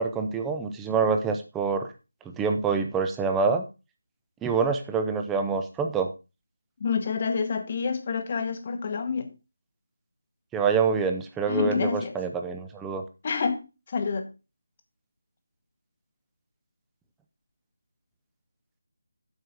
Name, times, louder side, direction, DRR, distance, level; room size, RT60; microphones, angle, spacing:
voice 1, 0.0-1.9 2.4-3.7 4.4-6.1 10.5-13.0, right 5 dB, 5° right, 0.5 m, -26 dB
voice 2, 6.8-9.3 11.5-12.2 13.2-13.6 13.9-14.3, left 5 dB, 25° left, 1.0 m, -28 dB
8.0 x 6.3 x 5.2 m
figure-of-eight pair, 180°, 0 cm